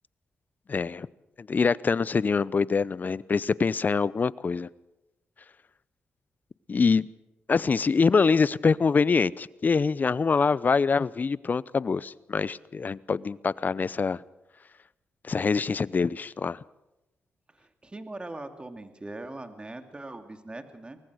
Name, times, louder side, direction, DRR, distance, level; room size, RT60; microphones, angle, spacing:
voice 1, 0.7-1.1 1.4-4.7 6.7-7.1 7.5-14.2 15.3-16.6, left 5 dB, 45° left, 20 dB, 0.7 m, -24 dB
voice 2, 17.5-21.0, right 2 dB, 25° right, 7 dB, 2.6 m, -41 dB
23.5 x 19.0 x 6.4 m, 0.96 s
cardioid pair, 55°, 4 cm